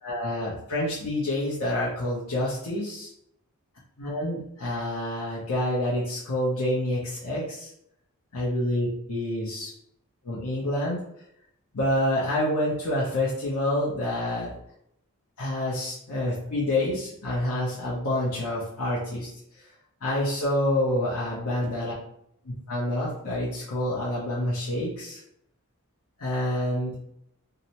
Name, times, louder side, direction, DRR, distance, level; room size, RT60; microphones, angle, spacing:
voice 1, 0.0-3.1 4.0-7.7 8.3-9.7 10.2-11.0 11.7-14.5 15.4-19.3 20.0-21.9 22.4-25.2 26.2-26.9, left 1 dB, 85° left, -7 dB, 0.6 m, -27 dB
2.7 x 2.0 x 2.8 m, 0.74 s
head